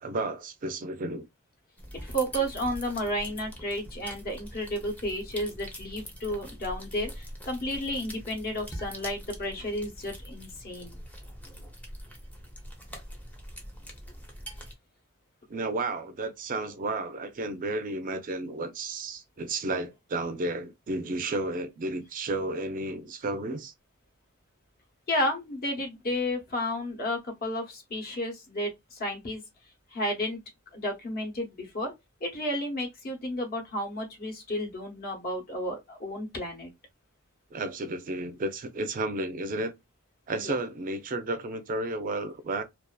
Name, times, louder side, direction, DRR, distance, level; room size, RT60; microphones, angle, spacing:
voice 1, 0.0-1.3 15.5-23.7 37.5-39.7 40.3-42.6, right 2 dB, 40° right, 0.4 m, -32 dB
sound 1, 1.8-14.7, equal, 5° left, 0.6 m, -43 dB
voice 2, 2.0-11.0 25.1-29.4 29.9-30.4 30.7-31.9 32.2-36.7 40.4-40.5, equal, 45° left, 0.9 m, -32 dB
2.5 x 2.3 x 2.2 m
head